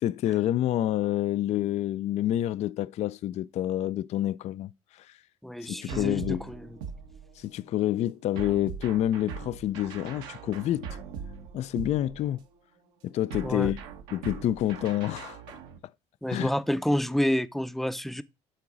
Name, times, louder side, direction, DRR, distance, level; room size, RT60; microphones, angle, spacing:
voice 1, 0.0-5.2 5.6-6.4 7.4-10.9 11.5-12.4 13.0-13.8 14.1-15.6 16.3-16.5, left 12 dB, 45° left, 0.4 m, -28 dB
voice 2, 5.4-6.6 13.4-13.7 16.2-18.2, equal, ahead, 0.6 m, -28 dB
sound 1, 5.9-7.6 8.4-12.5 13.3-15.8, right 7 dB, 80° right, 1.5 m, -41 dB
8.7 x 3.8 x 6.0 m
supercardioid pair, 90°, 15 cm